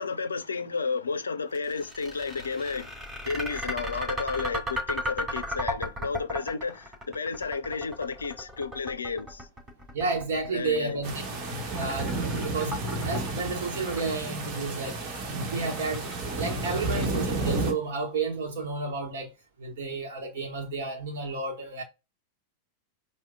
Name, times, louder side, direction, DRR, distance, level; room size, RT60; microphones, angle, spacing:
voice 1, 0.0-9.5 10.5-11.0, left 4 dB, 75° left, 0.4 m, -32 dB
sound 1, 1.5-17.7, equal, 15° right, 2.6 m, -36 dB
voice 2, 9.9-11.1 11.7-15.0 15.3-16.1 16.3-19.3 19.6-21.8, right 4 dB, 55° right, 1.0 m, -31 dB
sound 2, 11.0-17.7, right 2 dB, 40° right, 1.2 m, -31 dB
4.8 x 2.1 x 3.6 m
figure-of-eight pair, 90°, 0 cm